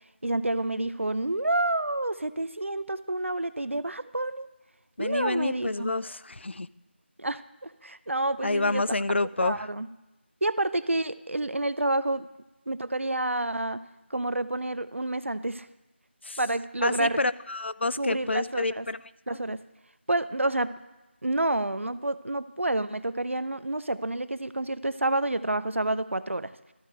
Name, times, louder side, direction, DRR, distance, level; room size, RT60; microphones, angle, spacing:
voice 1, 0.2-4.5 5.0-5.9 7.2-8.8 9.1-9.9 10.4-12.3 12.7-13.8 14.1-15.7 16.4-17.2 18.0-18.9 19.3-19.6 20.1-20.7 21.2-26.5, right 2 dB, 90° right, 15 dB, 0.5 m, -29 dB
voice 2, 5.0-6.7 8.4-9.7 16.2-16.4 16.8-19.0, left 2 dB, 65° left, 17 dB, 0.4 m, -28 dB
12.5 x 4.8 x 6.6 m, 1.0 s
figure-of-eight pair, 170°, 7 cm